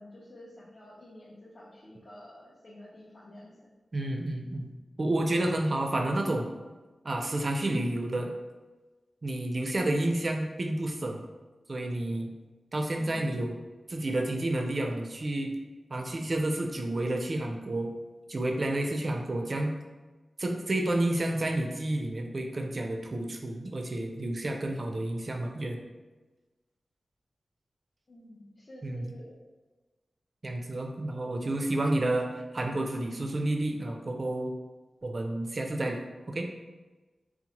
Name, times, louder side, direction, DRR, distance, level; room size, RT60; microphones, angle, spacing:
voice 1, 0.0-3.5 12.9-13.5 28.1-29.3, left 1 dB, 55° left, -7 dB, 0.6 m, -50 dB
voice 2, 3.9-6.5 7.0-8.3 9.2-11.2 11.7-12.3 12.7-13.6 13.9-15.5 15.9-17.9 18.3-19.7 20.4-25.8 28.8-29.1 30.4-34.5 35.0-36.0 36.3-36.5, right 1 dB, 50° right, 2 dB, 0.4 m, -30 dB
2.8 x 2.0 x 2.8 m, 1.2 s
cardioid pair, 40°, 0 cm